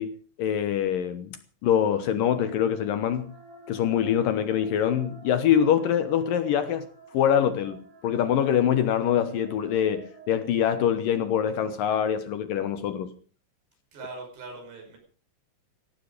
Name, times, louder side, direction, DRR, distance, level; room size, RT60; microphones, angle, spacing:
voice 1, 0.0-1.4 1.6-3.3 3.7-6.9 7.1-13.1, left 9 dB, 65° left, 2.4 m, -24 dB
sound 1, 2.0-11.2, right 3 dB, 50° right, 5.8 m, -50 dB
voice 2, 13.9-15.0, right 3 dB, 80° right, 7.6 m, -41 dB
18.5 x 14.5 x 5.1 m
omnidirectional pair, 4.8 m